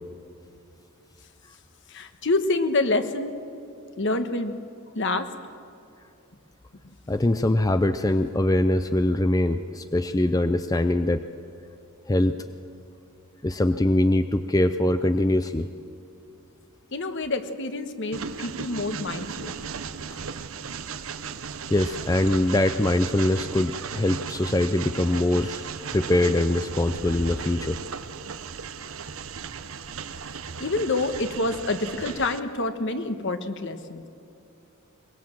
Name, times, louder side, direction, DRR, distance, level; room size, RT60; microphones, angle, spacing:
voice 1, 1.9-3.4 4.0-4.6 4.9-5.3 16.9-19.6 30.6-34.1, left 2 dB, 55° left, 9 dB, 1.3 m, -27 dB
voice 2, 7.1-11.2 12.1-12.3 13.4-15.7 20.1-20.2 21.7-27.8, left 1 dB, 15° left, 9 dB, 0.5 m, -23 dB
Train, 18.1-32.4, right 6 dB, 65° right, 0.8 m, -36 dB
23.0 x 21.5 x 7.5 m, 2.6 s
head